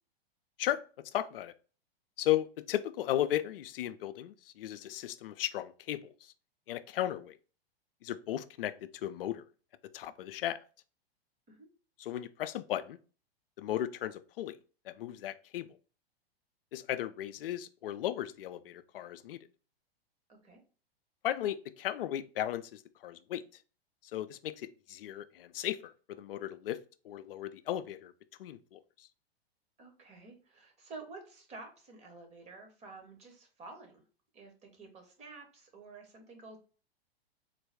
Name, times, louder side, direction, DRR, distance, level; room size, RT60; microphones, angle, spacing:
voice 1, 0.6-1.5 2.2-6.3 6.7-7.4 8.0-9.5 9.9-10.6 12.0-13.0 13.6-14.6 14.9-15.8 16.7-19.5 21.2-23.4 24.0-26.8 27.0-28.1 28.4-29.1, left 12 dB, 65° left, 12 dB, 0.4 m, -36 dB
voice 2, 20.3-20.6 29.8-34.0 34.3-36.6, right 3 dB, 20° right, 3 dB, 1.0 m, -50 dB
3.9 x 2.2 x 3.4 m, 0.37 s
hypercardioid pair, 105°, 31 cm